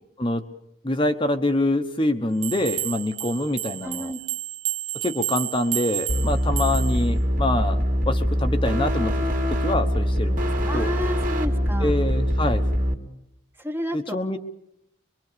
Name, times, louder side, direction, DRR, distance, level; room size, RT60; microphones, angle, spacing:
voice 1, 0.8-4.1 5.0-9.1 9.5-10.9 11.8-12.6 13.9-14.4, left 1 dB, 25° left, 6 dB, 1.2 m, -25 dB
sound 1, 2.4-7.1, right 15 dB, 70° right, 1.7 m, -31 dB
voice 2, 3.8-4.2 10.7-12.0 13.6-14.2, equal, 10° right, 5 dB, 1.4 m, -31 dB
sound 2, 6.1-12.9, equal, 40° right, 2.6 m, -23 dB
24.5 x 23.5 x 6.9 m, 0.78 s
head